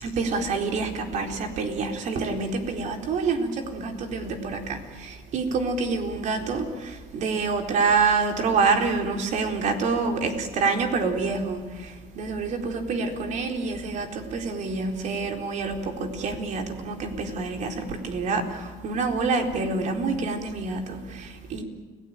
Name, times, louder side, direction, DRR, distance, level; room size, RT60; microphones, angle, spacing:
voice 1, 0.0-6.6 7.1-11.6 12.2-21.6, right 4 dB, 55° right, 4 dB, 4.2 m, -27 dB
30.0 x 17.5 x 9.3 m, 1.3 s
supercardioid pair, 105°, 15 cm